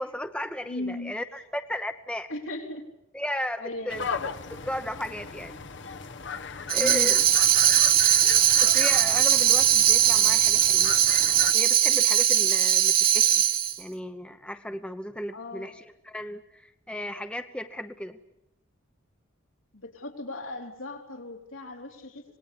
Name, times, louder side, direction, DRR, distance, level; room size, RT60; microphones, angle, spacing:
voice 1, 0.0-2.3 3.1-4.1 4.5-5.6 6.7-7.2 8.6-11.0 11.5-13.4 13.8-18.2, left 1 dB, 5° left, 8 dB, 0.9 m, -35 dB
voice 2, 0.7-1.2 2.3-2.8 3.6-4.0 6.7-7.1 15.3-15.7 19.7-22.2, left 2 dB, 80° left, 1 dB, 3.9 m, -37 dB
sound 1, 3.9-11.5, left 5 dB, 60° left, 1.1 m, -37 dB
Tambourine, 6.7-13.8, right 11 dB, 45° right, 1.3 m, -20 dB
26.5 x 19.5 x 8.7 m, 0.86 s
head